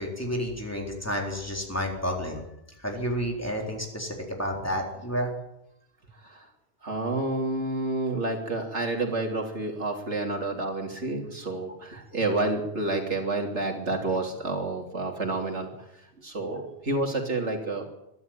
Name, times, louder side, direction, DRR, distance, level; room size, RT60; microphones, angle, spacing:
voice 1, 0.0-2.4 2.8-5.3 16.5-16.6, equal, 15° left, 0 dB, 4.0 m, -30 dB
voice 2, 6.8-15.7 16.2-17.8, right 2 dB, 85° right, 2 dB, 3.5 m, -29 dB
23.0 x 12.5 x 9.1 m, 0.84 s
omnidirectional pair, 1.2 m